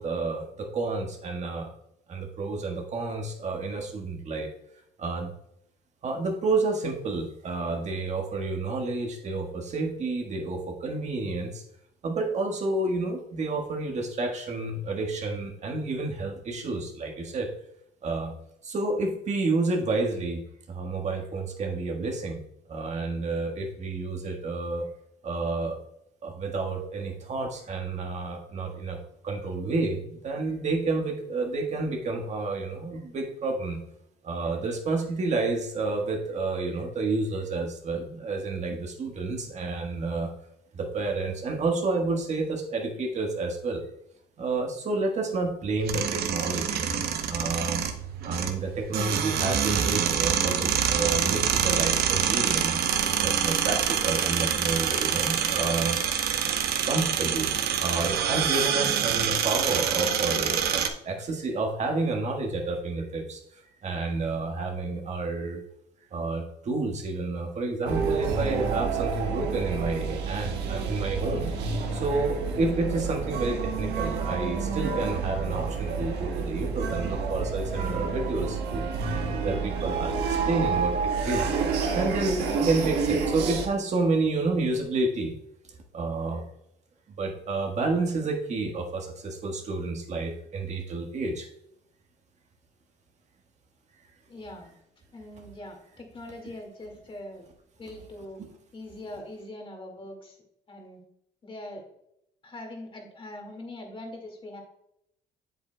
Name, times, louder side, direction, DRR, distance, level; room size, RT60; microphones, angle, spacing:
voice 1, 0.0-1.7 2.1-4.5 5.0-5.3 6.0-11.6 12.0-17.5 18.0-18.3 18.6-20.4 20.7-22.4 22.7-24.8 25.2-25.8 26.2-29.0 29.2-33.8 34.2-40.3 40.7-43.8 44.4-47.8 48.2-52.7 53.2-56.0 56.8-57.5 57.8-63.4 63.8-65.6 66.1-78.8 79.4-81.5 81.9-85.4 85.9-86.4 87.2-91.5, right 3 dB, 45° right, 2 dB, 1.4 m, -30 dB
sound 1, 45.8-60.9, right 8 dB, 65° right, 0.8 m, -26 dB
sound 2, 67.9-83.7, right 5 dB, 80° right, 1.2 m, -29 dB
voice 2, 94.3-94.7 95.1-97.4 97.7-98.4 98.7-100.4 100.7-101.0 101.4-101.8 102.4-104.6, left 1 dB, 30° left, 2 dB, 2.0 m, -42 dB
8.0 x 7.3 x 2.2 m, 0.76 s
cardioid pair, 110°, 17 cm